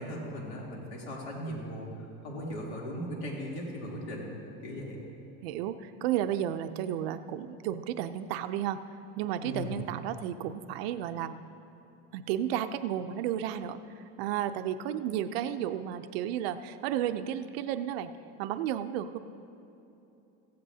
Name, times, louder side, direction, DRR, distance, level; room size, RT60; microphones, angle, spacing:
voice 1, 0.0-1.9 2.2-4.3 4.6-5.0 9.4-9.8, equal, 85° left, -3 dB, 3.2 m, -38 dB
voice 2, 5.4-8.8 9.2-11.4 12.1-18.1 18.4-19.2, right 10 dB, 80° right, 10 dB, 0.6 m, -33 dB
15.5 x 15.5 x 2.8 m, 2.9 s
cardioid pair, 180°, 30 cm